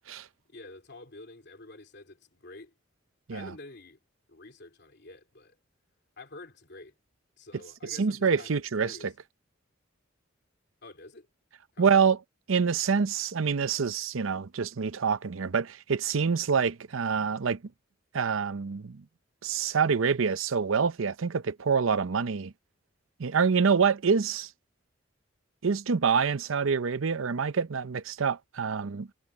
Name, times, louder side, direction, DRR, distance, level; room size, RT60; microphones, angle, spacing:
voice 1, 0.5-2.7 3.3-4.0 4.3-5.6 6.2-6.9 7.4-9.1 10.8-11.3 11.7-12.0, left 2 dB, 55° left, 3.2 m, -48 dB
voice 2, 7.9-9.1 11.8-12.2 12.5-17.6 18.1-19.0 19.4-22.5 23.2-24.5 25.6-29.1, right 6 dB, 85° right, 0.6 m, -26 dB
head